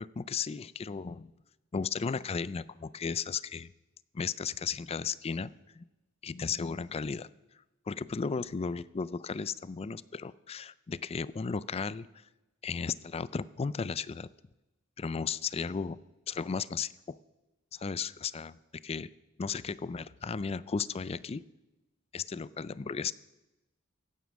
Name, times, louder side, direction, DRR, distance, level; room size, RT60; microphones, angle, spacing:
voice 1, 0.0-1.3 1.7-3.7 4.1-5.9 6.2-7.3 7.9-12.1 12.6-14.3 15.0-17.2 17.7-18.6 18.8-19.1 19.4-21.4 22.1-23.1, left 5 dB, 30° left, 19 dB, 0.4 m, -35 dB
15.5 x 9.4 x 6.3 m, 1.0 s
head